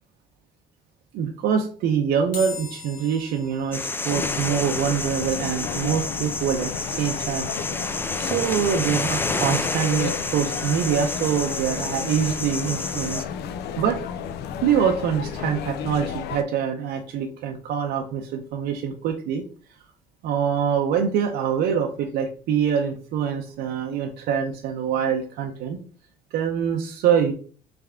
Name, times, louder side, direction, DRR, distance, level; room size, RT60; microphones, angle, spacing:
voice 1, 1.1-7.5 8.2-13.2 13.8-14.0 14.6-19.4 20.2-25.8 26.3-27.3, right 8 dB, 75° right, 2 dB, 0.6 m, -24 dB
sound 1, 2.3-15.7, left 5 dB, 55° left, 1.2 m, -46 dB
sound 2, 3.7-13.2, left 3 dB, 15° left, 0.4 m, -29 dB
sound 3, 4.1-16.4, left 8 dB, 75° left, 0.4 m, -33 dB
3.4 x 3.4 x 3.5 m, 0.42 s
cardioid pair, 110°, 17 cm